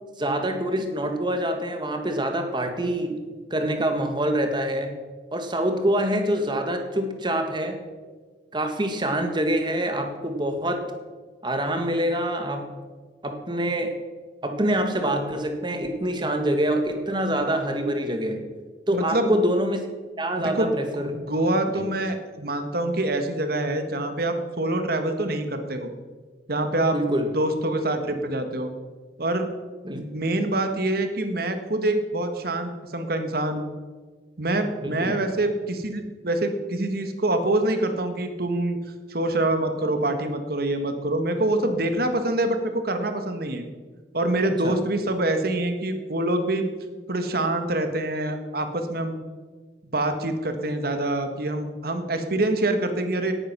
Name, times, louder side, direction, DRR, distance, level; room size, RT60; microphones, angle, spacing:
voice 1, 0.2-3.2 3.5-4.9 5.3-7.8 8.5-10.8 11.4-12.7 13.2-13.9 14.4-18.5 18.9-19.8 20.2-21.2 21.7-21.8 26.9-27.3 29.8-30.0 34.8-35.2 44.6-44.8, right 1 dB, 25° right, 6 dB, 1.8 m, -25 dB
voice 2, 18.9-19.3 20.3-20.8 21.1-25.9 26.5-27.0 27.3-28.7 29.2-29.5 29.9-33.7 34.4-38.8 39.1-43.6 44.1-46.7 47.1-49.2 49.9-53.3, right 1 dB, 60° right, 7 dB, 1.7 m, -25 dB
18.0 x 9.9 x 6.1 m, 1.4 s
head